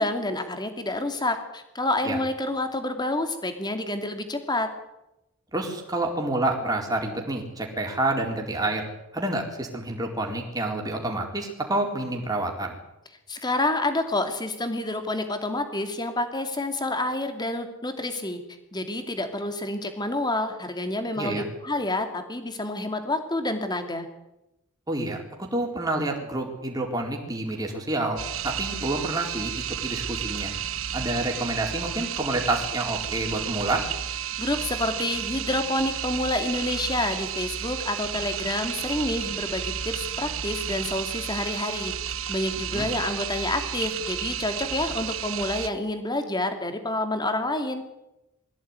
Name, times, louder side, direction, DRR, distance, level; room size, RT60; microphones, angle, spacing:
voice 1, 0.0-4.7 13.3-18.4 18.7-24.1 34.4-41.9 42.3-47.8, left 2 dB, 20° left, 7 dB, 2.7 m, -28 dB
voice 2, 5.5-8.9 9.1-12.7 21.2-21.5 24.9-30.5 30.9-33.8 42.7-42.9, right 2 dB, 15° right, 0 dB, 4.2 m, -28 dB
sound 1, 28.2-45.7, right 9 dB, 70° right, 1.3 m, -32 dB
22.0 x 16.0 x 9.8 m, 0.92 s
head